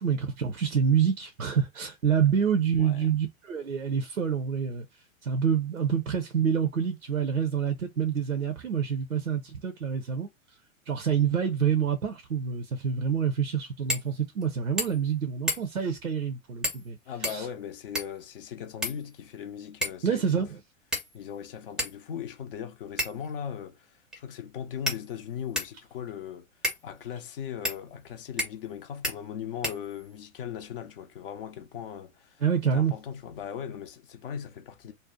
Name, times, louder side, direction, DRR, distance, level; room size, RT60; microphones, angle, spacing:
voice 1, 0.0-4.9 5.2-10.3 10.9-17.0 17.3-17.5 20.0-20.6 32.4-32.9, right 7 dB, 85° right, 0.6 m, -27 dB
voice 2, 2.8-3.1 17.1-20.5 21.1-32.4 32.7-34.9, left 8 dB, 45° left, 0.6 m, -39 dB
sound 1, 13.9-14.1 14.4-14.5 14.8-15.1 15.5-15.9 16.6-16.9 17.2-18.2 18.8-19.4 19.8-20.1 20.9-21.3 21.8-21.9 23.0-23.3 24.1-24.2 24.9-25.8 26.6-26.8 27.6-27.8 28.4-28.7 29.0-29.2 29.6-30.2, equal, ahead, 0.5 m, -32 dB
2.6 x 2.1 x 3.6 m
figure-of-eight pair, 100°, 40 cm